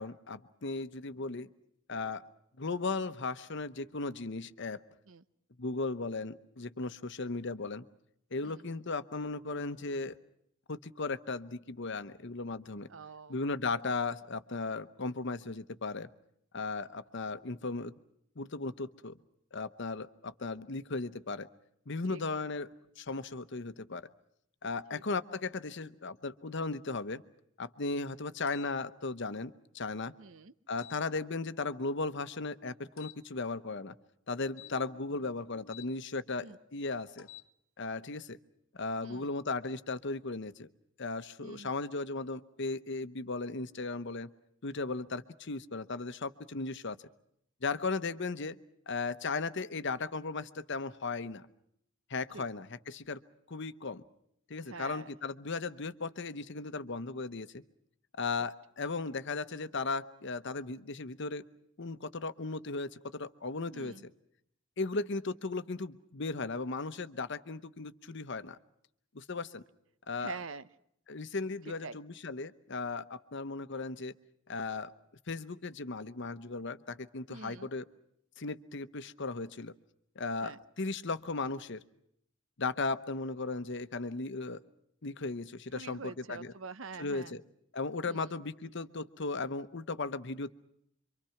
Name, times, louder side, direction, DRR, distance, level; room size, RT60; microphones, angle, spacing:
voice 1, 0.0-1.5 1.9-2.2 2.6-4.8 5.6-7.8 8.3-10.2 10.7-12.9 13.3-16.1 16.5-17.9 18.4-19.2 19.5-21.5 21.9-22.7 23.0-24.1 24.6-27.2 27.6-30.1 30.7-33.9 34.3-37.3 37.8-38.4 38.7-40.7 41.0-44.3 44.6-47.0 47.6-48.6 48.9-51.5 52.1-53.2 53.5-54.0 54.5-57.6 58.2-61.4 61.8-64.1 64.8-68.6 69.1-69.6 70.1-70.4 71.1-74.1 74.5-74.9 75.3-77.8 78.4-79.7 80.2-81.8 82.6-84.6 85.0-86.5 87.0-87.4 87.7-90.5, left 3 dB, 60° left, 12 dB, 0.9 m, -36 dB
voice 2, 12.9-13.4 22.1-22.2 24.9-25.0 30.2-30.5 36.4-36.6 39.0-39.3 41.4-41.7 52.3-52.4 54.7-55.1 58.4-58.5 63.7-64.0 70.2-70.7 71.7-72.0 77.3-77.7 80.4-80.6 85.7-87.3 88.1-88.4, right 4 dB, 70° right, 14 dB, 0.9 m, -46 dB
sound 1, 28.5-28.7 30.8-31.0 33.0-33.2 34.5-35.9 37.1-37.5, left 10 dB, 85° left, 1.1 m, -52 dB
27.0 x 24.5 x 5.8 m, 0.73 s
head